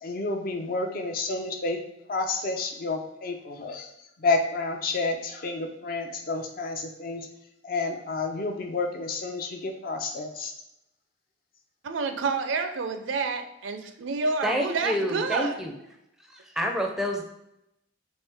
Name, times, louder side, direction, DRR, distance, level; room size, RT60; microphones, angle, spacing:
voice 1, 0.0-1.8 2.1-3.9 4.2-7.3 7.6-10.5, left 3 dB, 45° left, 4 dB, 0.5 m, -30 dB
voice 2, 11.8-15.6, right 4 dB, 70° right, 7 dB, 0.5 m, -29 dB
voice 3, 14.4-15.7 16.6-17.2, equal, ahead, 1 dB, 0.5 m, -27 dB
4.4 x 3.1 x 3.5 m, 0.86 s
head